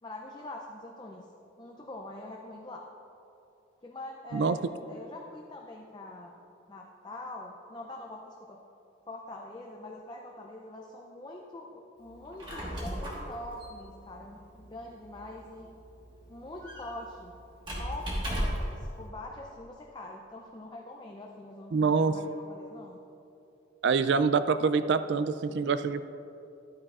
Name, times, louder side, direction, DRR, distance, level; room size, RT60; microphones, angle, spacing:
voice 1, 0.0-1.3 1.6-2.9 3.8-6.4 6.7-8.6 9.0-15.7 16.3-17.3 17.8-21.8 22.1-23.0, left 1 dB, 20° left, 0 dB, 0.5 m, -44 dB
Squeak, 12.2-18.8, equal, 25° right, 1.5 m, -37 dB
voice 2, 21.7-22.2 23.8-26.1, right 5 dB, 65° right, 12 dB, 0.3 m, -25 dB
11.5 x 8.7 x 2.5 m, 2.8 s
head